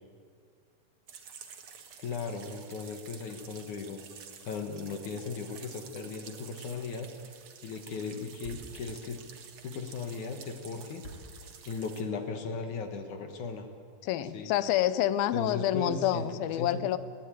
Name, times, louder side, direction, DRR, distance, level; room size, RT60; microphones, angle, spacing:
sound 1, 1.1-12.0, right 7 dB, 55° right, 2.3 m, -50 dB
voice 1, 2.0-4.0 4.4-7.1 7.6-9.2 9.6-11.0 11.7-13.7 14.3-14.5 15.3-16.8, left 4 dB, 60° left, 6 dB, 2.6 m, -37 dB
Thump thud, 8.4-12.4, right 1 dB, 15° left, 3.4 m, -48 dB
voice 2, 14.0-17.0, left 12 dB, 85° left, 15 dB, 2.6 m, -28 dB
20.5 x 14.5 x 9.1 m, 2.1 s
omnidirectional pair, 4.2 m